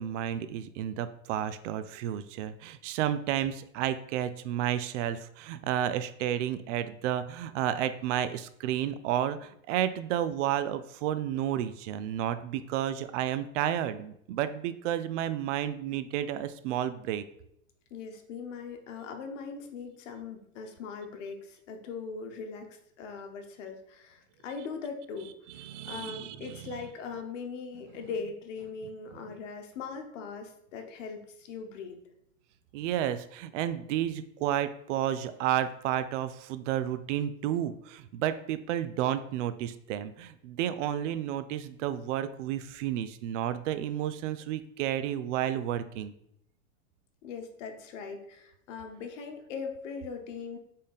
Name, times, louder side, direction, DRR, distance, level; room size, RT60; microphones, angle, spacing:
voice 1, 0.0-17.2 25.5-26.7 32.7-46.1, right 11 dB, 65° right, 12 dB, 0.5 m, -31 dB
voice 2, 17.9-25.3 25.9-32.0 47.2-50.6, left 5 dB, 65° left, 5 dB, 1.0 m, -40 dB
4.2 x 3.7 x 3.3 m, 0.74 s
hypercardioid pair, 125°, 40 cm